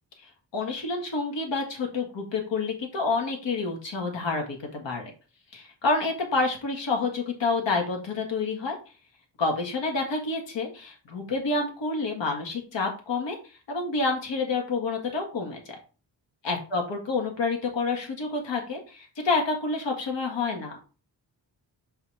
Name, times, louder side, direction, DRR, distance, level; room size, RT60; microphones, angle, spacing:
voice 1, 0.5-5.1 5.5-8.8 9.4-13.4 13.7-15.6 16.4-20.8, left 3 dB, 85° left, 2 dB, 2.0 m, -28 dB
5.6 x 3.2 x 5.6 m, 0.34 s
wide cardioid pair, 115°, 43 cm